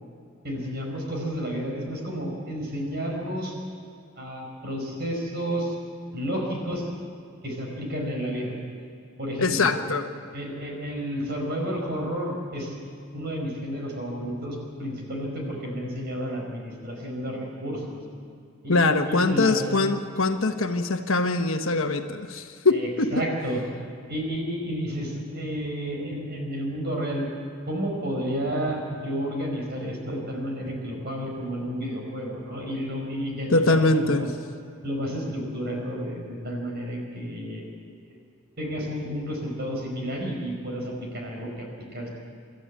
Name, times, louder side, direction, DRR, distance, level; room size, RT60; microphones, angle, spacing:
voice 1, 0.4-3.5 4.2-5.8 6.1-6.9 7.4-8.5 9.2-9.7 10.3-12.7 13.1-18.0 18.6-19.6 22.7-23.6 24.1-27.3 27.7-34.3 34.8-37.6 38.0-38.2 38.6-41.7 41.9-42.1, equal, 45° right, 0 dB, 5.2 m, -31 dB
voice 2, 9.4-10.1 18.7-23.1 33.5-34.3, left 3 dB, 65° left, 6 dB, 1.2 m, -23 dB
27.5 x 13.0 x 8.4 m, 2.4 s
head